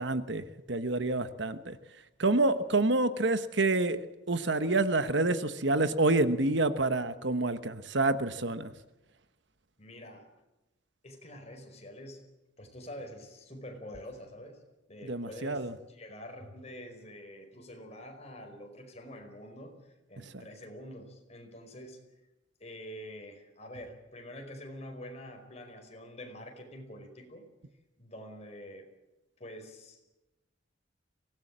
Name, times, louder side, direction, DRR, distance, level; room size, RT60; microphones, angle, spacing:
voice 1, 0.0-1.8 2.2-8.7 15.0-15.7, right 2 dB, 65° right, 12 dB, 1.2 m, -28 dB
voice 2, 9.8-10.3 11.0-12.2 12.6-14.6 14.9-22.0 22.6-27.4 28.0-28.9 29.4-30.2, equal, 35° left, 4 dB, 4.9 m, -46 dB
24.0 x 18.0 x 7.5 m, 1.0 s
head